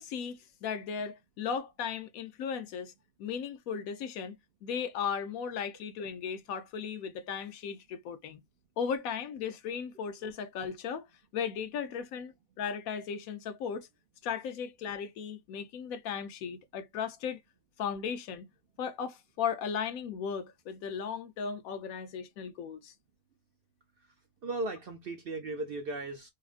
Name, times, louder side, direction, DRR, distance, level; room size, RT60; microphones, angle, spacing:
voice 1, 0.0-2.9 3.2-8.4 8.8-11.1 11.3-13.9 14.2-17.4 17.8-18.5 18.8-22.9, left 7 dB, 80° left, 1.1 m, -36 dB
voice 2, 24.4-26.3, right 2 dB, 60° right, 0.6 m, -36 dB
4.4 x 2.4 x 2.4 m
omnidirectional pair, 1.5 m